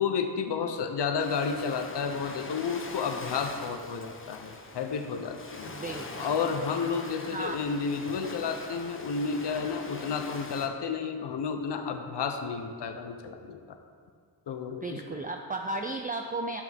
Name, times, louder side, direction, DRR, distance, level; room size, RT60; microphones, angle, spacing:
voice 1, 0.0-5.7 6.2-13.8 14.5-15.0, left 5 dB, 65° left, 6 dB, 0.8 m, -31 dB
Ocean, 1.2-10.7, left 3 dB, 30° left, 0.8 m, -42 dB
voice 2, 5.7-6.3 7.2-7.6 14.7-16.6, right 2 dB, 20° right, 3 dB, 0.4 m, -35 dB
9.7 x 6.0 x 3.5 m, 2.1 s
cardioid pair, 55°, 45 cm